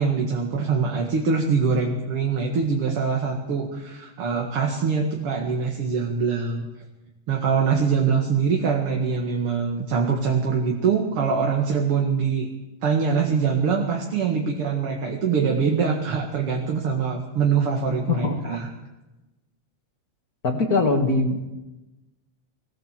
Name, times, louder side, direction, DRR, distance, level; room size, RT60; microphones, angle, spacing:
voice 1, 0.0-6.6 7.3-12.5 12.8-18.7, right 5 dB, 50° right, 1 dB, 2.6 m, -23 dB
voice 2, 18.1-18.6 20.4-21.4, left 3 dB, 35° left, 4 dB, 1.6 m, -22 dB
21.5 x 17.0 x 7.5 m, 1.1 s
omnidirectional pair, 3.6 m